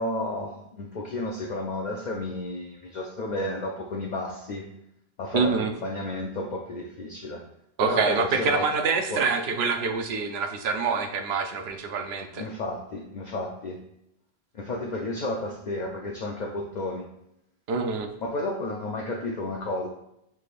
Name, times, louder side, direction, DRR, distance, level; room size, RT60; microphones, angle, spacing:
voice 1, 0.0-4.7 5.2-7.4 7.8-8.7 9.1-9.3 12.4-13.8 14.5-17.1 18.2-19.9, left 2 dB, 55° left, 0 dB, 0.5 m, -32 dB
voice 2, 5.3-5.7 7.8-12.4 17.7-18.1, right 5 dB, 80° right, 6 dB, 0.9 m, -26 dB
5.8 x 3.4 x 2.4 m, 0.79 s
omnidirectional pair, 1.0 m